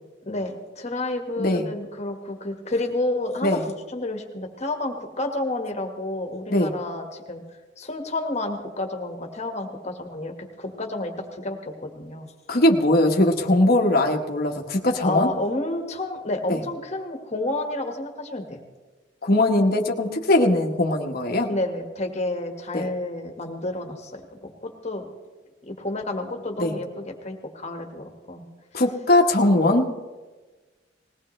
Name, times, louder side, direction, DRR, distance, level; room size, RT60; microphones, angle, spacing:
voice 1, 0.2-3.6 3.9-7.4 7.8-12.3 15.0-18.6 21.5-25.1 25.7-28.4, left 2 dB, 35° left, 3 dB, 1.7 m, -30 dB
voice 2, 1.4-1.7 3.4-3.6 6.5-6.7 12.5-15.3 16.5-16.6 19.2-21.5 22.7-22.9 26.6-26.7 28.7-29.9, left 1 dB, 55° left, 1 dB, 1.3 m, -20 dB
20.5 x 18.0 x 3.3 m, 1.3 s
head